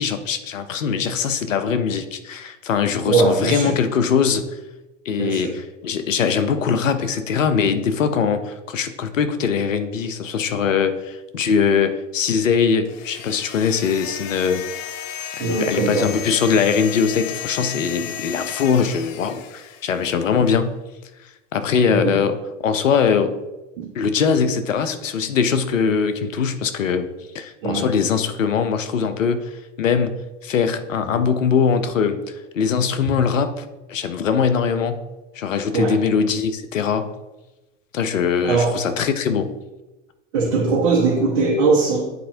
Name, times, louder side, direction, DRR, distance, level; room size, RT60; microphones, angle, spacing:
voice 1, 0.0-4.6 5.0-14.6 15.3-20.8 21.2-23.4 23.9-27.1 27.3-35.1 35.3-37.1 37.9-39.5, left 6 dB, 85° left, 10 dB, 0.7 m, -21 dB
voice 2, 3.1-3.8 5.2-5.6 15.4-16.1 21.9-22.2 23.8-23.9 27.6-27.9 33.0-33.2 35.7-36.0 38.4-38.8 40.3-42.1, right 4 dB, 60° right, -5 dB, 1.4 m, -20 dB
sound 1, 12.8-20.2, left 10 dB, 40° left, 0.6 m, -34 dB
9.3 x 4.2 x 2.7 m, 1.1 s
hypercardioid pair, 90°, 37 cm